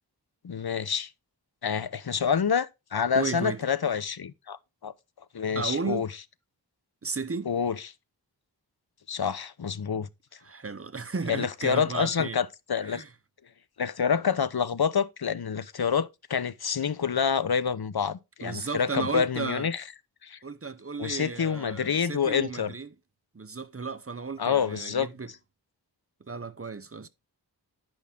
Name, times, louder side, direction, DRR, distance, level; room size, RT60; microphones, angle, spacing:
voice 1, 0.4-1.1 1.6-4.9 5.3-6.1 7.5-7.8 9.1-10.1 11.3-13.0 13.8-19.8 20.2-20.4 21.0-22.7 24.4-25.1, left 7 dB, 60° left, 0.7 m, -27 dB
voice 2, 3.1-3.6 5.6-6.0 7.0-7.5 10.4-12.4 12.8-13.1 18.4-19.7 20.4-22.9 23.3-25.3 26.2-27.1, right 4 dB, 35° right, 0.7 m, -34 dB
10.5 x 5.5 x 3.6 m
wide cardioid pair, 50°, 42 cm